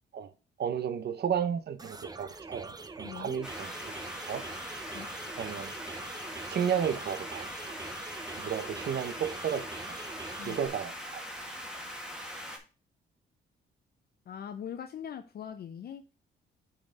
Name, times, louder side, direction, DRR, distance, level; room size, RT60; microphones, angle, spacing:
voice 1, 0.6-3.8 4.3-4.4 5.4-5.7 6.5-7.5 8.4-9.7 10.4-11.2, right 8 dB, 55° right, 0.7 m, -32 dB
sound 1, 1.8-10.7, right 3 dB, 20° right, 0.6 m, -44 dB
voice 2, 3.0-3.4 4.9-5.1 10.4-10.6 14.3-16.0, left 8 dB, 50° left, 0.6 m, -41 dB
sound 2, 3.4-12.6, equal, 5° right, 1.8 m, -41 dB
5.9 x 4.4 x 5.1 m
cardioid pair, 90°, 20 cm